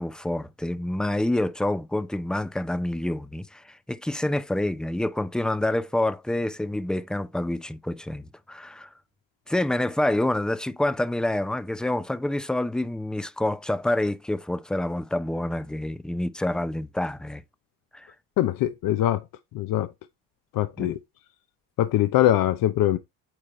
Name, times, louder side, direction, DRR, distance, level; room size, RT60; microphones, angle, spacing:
voice 1, 0.0-8.9 9.5-17.4 17.9-18.1 20.8-20.9, left 1 dB, ahead, 0.5 m, -27 dB
voice 2, 18.4-19.2 19.5-19.9 20.5-21.0 21.8-23.0, left 13 dB, 55° left, 0.7 m, -22 dB
9.0 x 3.2 x 4.1 m
supercardioid pair, 85°, 41 cm